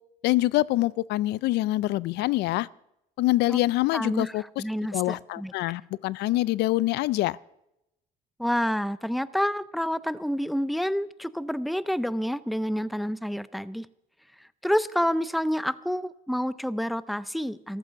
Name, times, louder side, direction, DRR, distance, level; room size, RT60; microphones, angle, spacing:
voice 1, 0.2-2.7 3.2-4.6 4.9-7.4, left 17 dB, 80° left, 22 dB, 0.4 m, -25 dB
voice 2, 3.9-5.5 8.4-13.9 14.6-17.8, equal, ahead, 17 dB, 0.5 m, -28 dB
14.5 x 14.0 x 5.7 m, 0.83 s
cardioid pair, 110°, 17 cm